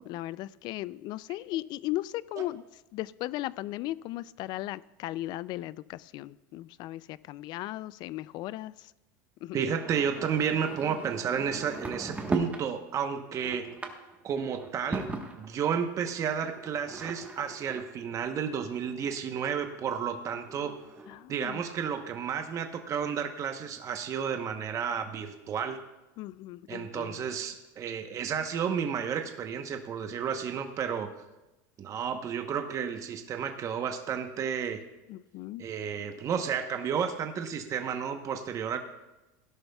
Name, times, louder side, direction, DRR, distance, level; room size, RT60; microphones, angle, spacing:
voice 1, 0.0-2.6 2.9-8.9 9.4-9.6 21.1-21.7 26.2-27.3 35.1-35.7, left 16 dB, 45° left, 19 dB, 0.4 m, -37 dB
voice 2, 9.5-13.7 14.2-20.8 21.3-25.8 26.7-31.1 31.8-34.8 35.6-38.8, right 7 dB, 30° right, 6 dB, 1.0 m, -32 dB
sound 1, 9.7-12.7 13.1-15.8 16.6-19.1 19.7-19.8 20.0-20.1 20.3-21.2, right 3 dB, 15° right, 1.2 m, -38 dB
17.0 x 11.0 x 2.3 m, 1.0 s
supercardioid pair, 130°, 10 cm